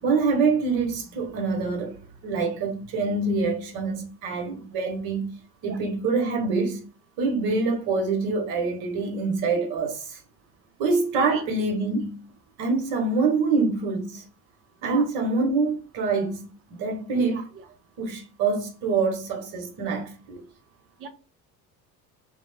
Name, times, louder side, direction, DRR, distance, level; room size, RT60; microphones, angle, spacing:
voice 1, 0.0-6.9 7.2-10.2 10.8-12.2 12.6-14.2 14.8-16.4 16.7-17.4 18.0-20.5, right 4 dB, 50° right, 1.1 m, -25 dB
voice 2, 17.3-17.6 21.0-21.1, right 6 dB, 30° right, 0.6 m, -36 dB
2.3 x 2.0 x 3.2 m
figure-of-eight pair, 65°, 49 cm